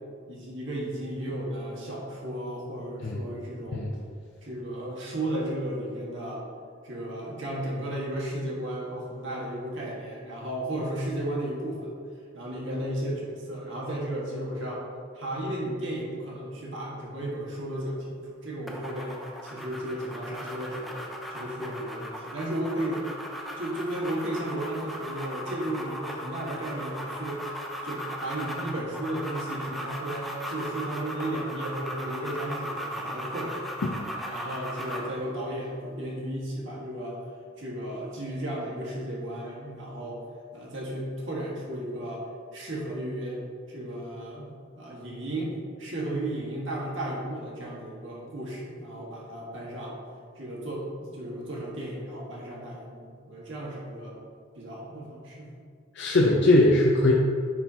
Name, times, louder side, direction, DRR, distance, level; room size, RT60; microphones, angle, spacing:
voice 1, 0.3-3.9 4.4-6.4 6.8-11.9 12.3-14.8 15.1-19.2 19.4-21.0 21.3-23.0 23.6-27.4 27.8-33.6 34.1-37.2 37.6-40.2 40.5-42.3 42.5-49.9 50.4-54.2 54.5-55.5, right 1 dB, 70° right, -4 dB, 1.5 m, -34 dB
sound 1, 18.7-35.2, equal, ahead, 0.5 m, -37 dB
voice 2, 56.0-57.1, left 2 dB, 60° left, 0 dB, 0.5 m, -20 dB
9.8 x 4.2 x 2.8 m, 2.2 s
head